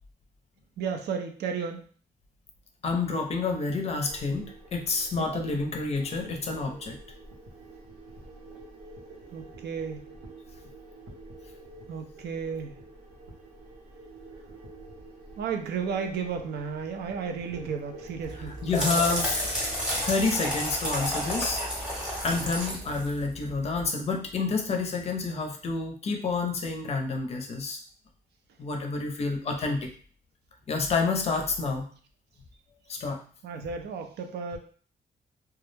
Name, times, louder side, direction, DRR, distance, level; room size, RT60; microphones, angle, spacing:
voice 1, 0.8-1.8 9.3-10.0 11.9-12.8 15.4-18.6 33.4-34.6, right 6 dB, 85° right, 5 dB, 0.4 m, -33 dB
voice 2, 2.8-7.0 18.4-19.4 20.0-27.8 28.6-29.9 30.7-31.9 32.9-33.2, left 4 dB, 40° left, 3 dB, 0.5 m, -29 dB
sound 1, 4.0-23.1, right 2 dB, 70° right, 0.8 m, -48 dB
sound 2, 18.2-23.8, equal, 5° right, 0.7 m, -31 dB
2.2 x 2.0 x 3.2 m, 0.44 s
wide cardioid pair, 155°, 17 cm